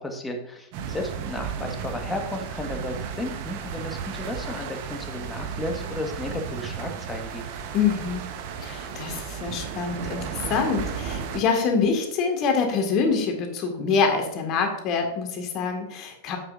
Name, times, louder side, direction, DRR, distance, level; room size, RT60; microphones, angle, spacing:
voice 1, 0.0-7.4, left 1 dB, 10° left, 3 dB, 1.7 m, -33 dB
sound 1, 0.7-11.4, right 7 dB, 50° right, 1.1 m, -34 dB
voice 2, 7.7-8.2 8.6-16.4, left 5 dB, 40° left, 4 dB, 2.0 m, -25 dB
9.5 x 7.8 x 2.7 m, 0.85 s
figure-of-eight pair, 95°, 0 cm